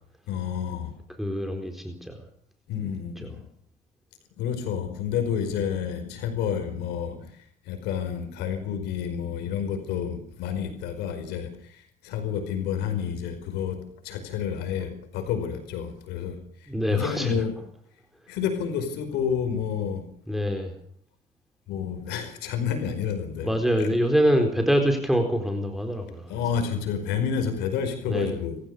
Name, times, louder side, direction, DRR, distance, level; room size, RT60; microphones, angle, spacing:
voice 1, 0.3-0.9 2.7-3.4 4.4-17.5 18.3-20.1 21.7-23.9 26.3-28.6, left 7 dB, 90° left, 7 dB, 5.0 m, -30 dB
voice 2, 1.2-2.1 2.8-2.9 3.2-3.3 16.7-17.4 20.3-20.7 23.4-26.4 28.1-28.3, equal, ahead, 5 dB, 4.2 m, -25 dB
27.0 x 15.5 x 6.8 m, 0.64 s
cardioid pair, 110°, 17 cm